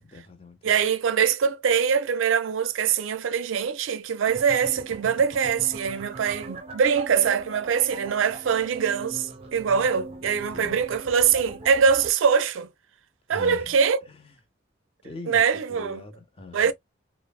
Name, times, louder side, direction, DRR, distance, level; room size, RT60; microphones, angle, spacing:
voice 1, 0.0-0.8 6.3-6.4 9.8-10.0 10.5-10.8 13.3-13.8 14.1-14.3 15.0-16.7, left 2 dB, 30° left, 0.6 m, -43 dB
voice 2, 0.6-12.7 13.3-14.0 15.3-16.0 16.5-16.7, right 6 dB, 85° right, 0.4 m, -23 dB
sound 1, 4.3-12.1, right 2 dB, 30° right, 0.5 m, -41 dB
3.1 x 2.0 x 2.3 m
head